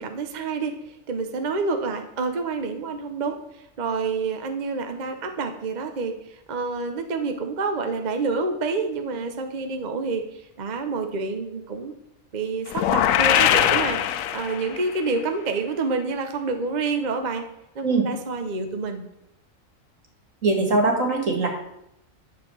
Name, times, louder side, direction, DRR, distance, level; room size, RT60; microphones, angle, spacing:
voice 1, 0.0-11.9 12.3-17.4 17.7-19.0, right 4 dB, 40° right, 6 dB, 0.9 m, -28 dB
sound 1, 12.7-14.9, left 10 dB, 90° left, 1.0 m, -21 dB
voice 2, 20.4-21.5, right 3 dB, 80° right, 2 dB, 2.3 m, -21 dB
10.5 x 4.6 x 7.0 m, 0.80 s
omnidirectional pair, 1.3 m